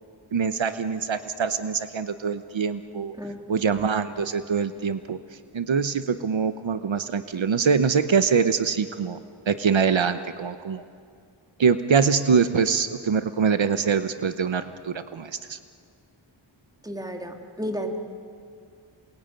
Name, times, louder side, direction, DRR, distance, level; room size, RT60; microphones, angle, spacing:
voice 1, 0.3-3.1 3.5-5.2 5.5-9.2 9.5-10.8 11.6-15.6, right 6 dB, 70° right, 11 dB, 1.0 m, -24 dB
voice 2, 16.8-18.0, equal, 10° right, 3 dB, 2.3 m, -32 dB
28.0 x 21.5 x 9.1 m, 2.3 s
wide cardioid pair, 90°, 47 cm